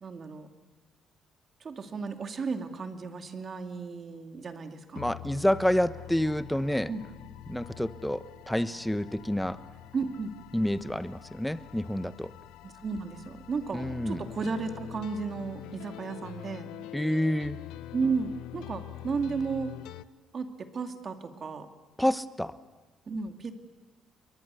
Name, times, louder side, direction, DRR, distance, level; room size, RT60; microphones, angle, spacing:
voice 1, 0.0-0.5 1.6-5.0 6.9-7.0 9.9-10.3 12.6-16.7 17.9-19.8 20.3-21.7 23.1-23.5, right 4 dB, 40° right, 6 dB, 2.6 m, -34 dB
sound 1, 4.9-20.0, left 14 dB, 90° left, 0.7 m, -45 dB
voice 2, 4.9-6.9 7.5-9.6 10.5-12.3 13.7-14.2 16.9-17.6 22.0-22.6, equal, 5° left, 13 dB, 1.0 m, -28 dB
30.0 x 22.5 x 7.0 m, 1.3 s
cardioid pair, 90°, 0 cm